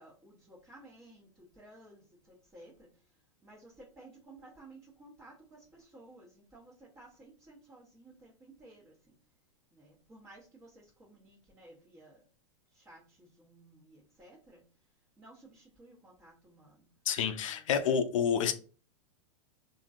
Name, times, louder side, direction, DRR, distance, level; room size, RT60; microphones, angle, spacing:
voice 1, 0.0-2.9 3.4-8.9 9.7-12.2 12.7-14.6 15.2-16.9 17.4-17.6, right 2 dB, 15° right, 0.9 m, -56 dB
voice 2, 17.1-18.5, left 7 dB, 75° left, 0.5 m, -28 dB
2.8 x 2.7 x 2.4 m
hypercardioid pair, 115°, 17 cm